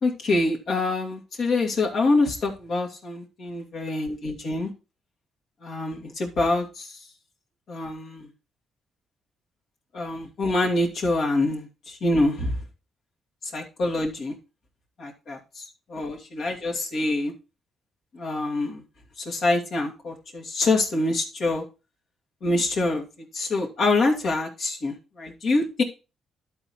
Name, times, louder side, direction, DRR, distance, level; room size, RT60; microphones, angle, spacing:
voice 1, 0.0-4.7 5.6-7.0 7.7-8.3 9.9-12.6 13.5-14.4 15.0-15.6 15.9-17.3 18.1-18.8 19.2-21.6 22.4-23.1 23.3-25.8, left 2 dB, 60° left, -1 dB, 2.2 m, -25 dB
11.5 x 4.1 x 4.5 m, 0.31 s
cardioid pair, 90°, 0 cm